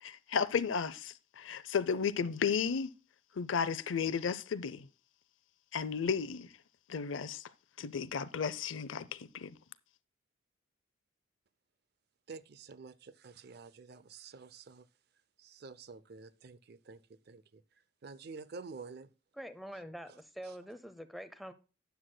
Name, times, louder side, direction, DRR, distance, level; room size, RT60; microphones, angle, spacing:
voice 1, 0.0-2.9 3.4-4.9 5.7-6.5 6.9-7.4 7.8-9.5, left 6 dB, 70° left, 0.5 m, -33 dB
voice 2, 12.3-14.8 15.4-17.0 17.3-17.6 18.0-19.1 20.4-20.5, right 4 dB, 50° right, 0.5 m, -49 dB
voice 3, 19.3-21.5, equal, ahead, 0.5 m, -45 dB
12.5 x 9.4 x 2.2 m
head